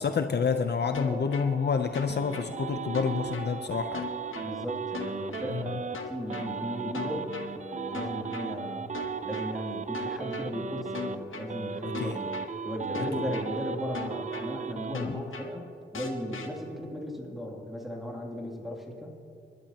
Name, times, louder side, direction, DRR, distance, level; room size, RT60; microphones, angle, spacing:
voice 1, 0.0-4.0 5.5-5.7 12.0-12.1 13.0-13.1 14.9-15.2, left 5 dB, 55° left, 7 dB, 0.6 m, -28 dB
sound 1, 0.9-1.5 1.9-2.5 2.9-3.5 3.9-4.5 4.9-5.5 5.9-6.5 6.9-7.5 7.9-8.5 8.9-9.5 9.9-10.5 10.9-11.5 11.9-12.5 12.9-13.5 13.9-14.5 14.9-15.5 15.9-16.5, left 4 dB, 85° left, 1.4 m, -38 dB
sound 2, 1.6-6.0 6.3-11.2 11.5-15.0, right 6 dB, 35° right, 0.5 m, -36 dB
voice 2, 4.4-8.9 9.2-12.3 12.6-19.1, equal, ahead, -2 dB, 2.8 m, -36 dB
28.5 x 12.0 x 2.9 m, 2.7 s
wide cardioid pair, 95°, 20 cm